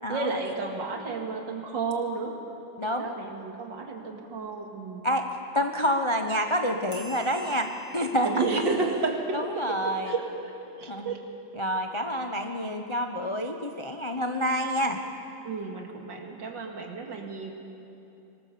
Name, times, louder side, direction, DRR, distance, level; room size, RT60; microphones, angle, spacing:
voice 1, 0.1-2.4 2.9-5.1 8.2-9.4 9.8-11.2 15.4-17.5, right 3 dB, 65° right, 2 dB, 2.8 m, -32 dB
voice 2, 2.8-3.1 5.0-5.2 5.5-7.7 7.9-8.3 9.3-10.1 10.9-11.1 11.6-15.0, equal, 25° left, 4 dB, 0.6 m, -28 dB
sound 1, 6.9-10.0, left 2 dB, 50° right, 2.9 m, -47 dB
24.5 x 20.0 x 6.9 m, 2.9 s
omnidirectional pair, 2.2 m